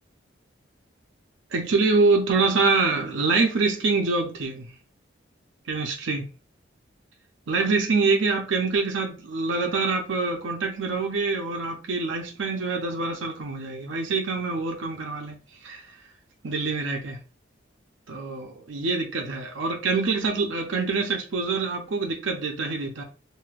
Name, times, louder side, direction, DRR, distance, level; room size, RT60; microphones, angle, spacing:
voice 1, 1.5-4.7 5.7-6.2 7.5-15.4 15.6-15.9 16.4-17.2 18.1-23.0, right 4 dB, 75° right, 0.6 m, -25 dB
3.2 x 2.6 x 2.4 m
head